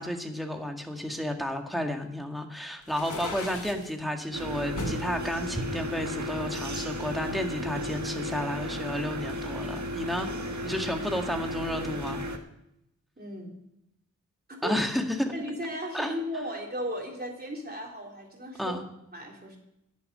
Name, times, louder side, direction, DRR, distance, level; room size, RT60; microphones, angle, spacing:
voice 1, 0.0-10.3 10.6-12.2 14.6-15.3 15.9-16.1 18.6-18.8, equal, ahead, 3 dB, 1.9 m, -32 dB
sound 1, 2.8-3.9 4.8-5.1 5.7-6.7, left 1 dB, 90° left, 2.1 m, -37 dB
sound 2, 4.3-12.4, equal, 70° right, 1.5 m, -34 dB
voice 2, 13.2-13.6 14.5-14.8 15.3-18.8 19.1-19.6, equal, 30° right, -1 dB, 3.6 m, -36 dB
11.0 x 7.2 x 9.3 m, 0.83 s
wide cardioid pair, 50°, 30 cm